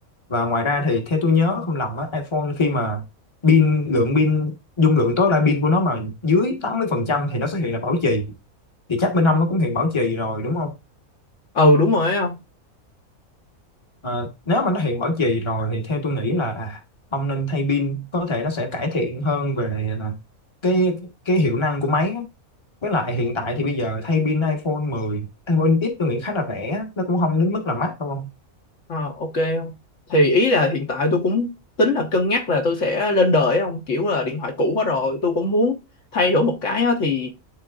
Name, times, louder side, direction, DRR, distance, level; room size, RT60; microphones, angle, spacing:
voice 1, 0.3-3.0 3.4-8.3 8.9-10.7 14.0-16.8 17.1-20.2 20.6-22.3 22.8-28.3, left 2 dB, 20° left, 1.2 m, -22 dB
voice 2, 11.5-12.4 28.9-29.7 30.1-31.5 31.8-35.8 36.1-37.3, left 2 dB, 60° left, 1.4 m, -20 dB
11.5 x 3.8 x 2.4 m
omnidirectional pair, 1.5 m